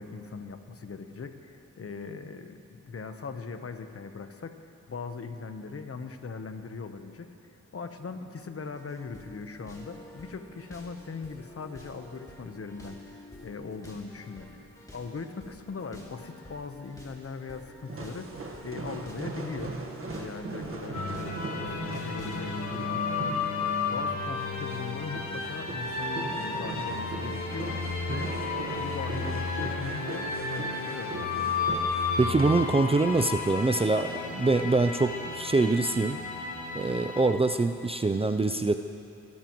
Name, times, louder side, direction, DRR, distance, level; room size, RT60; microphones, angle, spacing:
voice 1, 0.0-7.3 7.7-14.6 14.9-18.3 18.6-19.8 20.1-21.4 21.9-23.1 23.6-27.8 28.1-28.3 28.8-31.9, left 4 dB, 50° left, 7 dB, 1.0 m, -40 dB
sound 1, 8.7-26.5 26.9-27.0, left 1 dB, 10° left, 2.7 m, -50 dB
sound 2, 17.9-32.8, right 3 dB, 45° right, 1.5 m, -40 dB
sound 3, 20.9-37.3, left 4 dB, 70° left, 1.7 m, -33 dB
voice 2, 32.2-36.2 36.7-38.8, right 3 dB, 20° right, 7 dB, 0.4 m, -24 dB
26.0 x 12.0 x 3.1 m, 2.6 s
cardioid pair, 75°, 31 cm